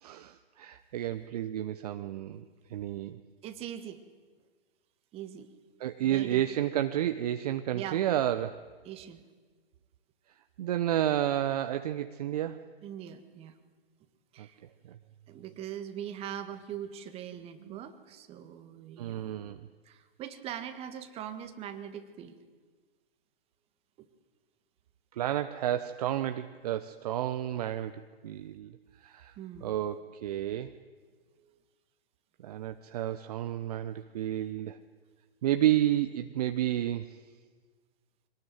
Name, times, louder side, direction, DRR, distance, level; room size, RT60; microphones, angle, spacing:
voice 1, 0.0-2.4 2.7-3.2 5.8-8.6 10.6-12.7 14.4-14.5 14.8-15.0 17.6-17.8 19.0-19.7 25.1-28.7 29.0-29.4 29.6-30.7 32.4-34.8 35.4-37.2, right 12 dB, 40° right, 9 dB, 0.9 m, -31 dB
voice 2, 3.4-4.0 5.1-5.5 6.0-6.5 7.7-8.0 8.8-9.2 12.8-13.6 14.3-14.6 15.3-19.2 19.8-22.4 29.4-29.7 31.4-31.5, right 10 dB, 20° right, 9 dB, 1.6 m, -41 dB
24.0 x 19.0 x 9.2 m, 1.5 s
figure-of-eight pair, 125°, 31 cm